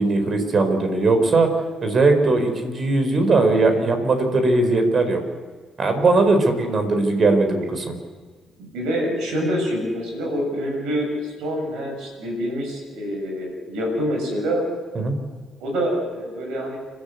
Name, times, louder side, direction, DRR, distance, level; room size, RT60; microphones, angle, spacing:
voice 1, 0.0-1.5 1.8-5.2 5.8-7.9 14.9-15.1, right 3 dB, 45° right, 6 dB, 4.5 m, -19 dB
voice 2, 8.6-14.6 15.6-16.8, equal, 65° right, 2 dB, 7.0 m, -26 dB
29.5 x 13.0 x 8.3 m, 1.5 s
figure-of-eight pair, 45°, 0 cm